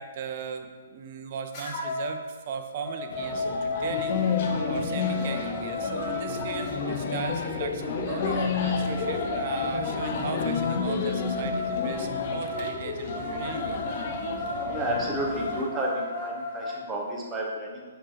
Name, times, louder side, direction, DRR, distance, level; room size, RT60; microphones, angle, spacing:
voice 1, 0.0-4.1 4.7-13.8, right 6 dB, 45° right, 7 dB, 0.4 m, -37 dB
sound 1, 1.5-2.2 2.6-6.8 8.2-16.8, left 3 dB, 25° left, 1.1 m, -34 dB
sound 2, 3.1-15.6, left 5 dB, 50° left, 0.4 m, -31 dB
voice 2, 14.7-17.8, right 1 dB, 15° right, -3 dB, 0.9 m, -31 dB
5.9 x 2.9 x 2.9 m, 1.5 s
figure-of-eight pair, 130°, 0 cm